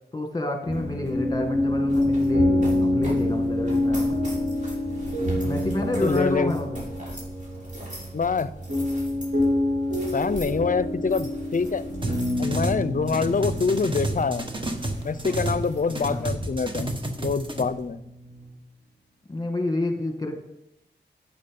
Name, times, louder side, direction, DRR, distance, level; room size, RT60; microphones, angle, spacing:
voice 1, 0.1-4.1 5.4-6.8 15.9-16.3 19.3-20.4, left 1 dB, 20° left, 3 dB, 2.0 m, -29 dB
sound 1, 0.7-17.9, equal, 45° right, 5.3 m, -43 dB
sound 2, 0.7-18.5, left 1 dB, 70° right, 3.7 m, -27 dB
voice 2, 6.0-6.6 8.1-8.5 10.1-11.8 12.4-14.5 15.0-16.9 17.2-18.0, left 5 dB, 45° left, 15 dB, 0.6 m, -25 dB
sound 3, 12.0-12.8 13.1-15.6 15.9-17.6, right 1 dB, 25° right, 1.5 m, -30 dB
11.5 x 8.7 x 5.4 m, 0.85 s
wide cardioid pair, 70°, 19 cm